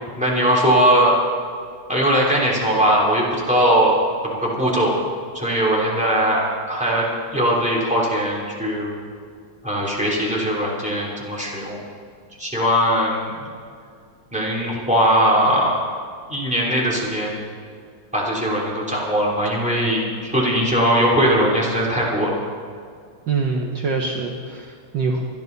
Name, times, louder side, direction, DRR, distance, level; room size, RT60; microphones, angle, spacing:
voice 1, 0.2-1.1 1.9-3.9 4.2-4.9 5.3-8.9 9.6-11.8 12.4-13.5 14.3-15.7 16.3-17.4 18.1-22.3, equal, 5° right, -5 dB, 3.2 m, -20 dB
voice 2, 23.3-25.2, right 4 dB, 60° right, 0 dB, 1.7 m, -24 dB
25.0 x 10.5 x 4.1 m, 2.2 s
omnidirectional pair, 2.3 m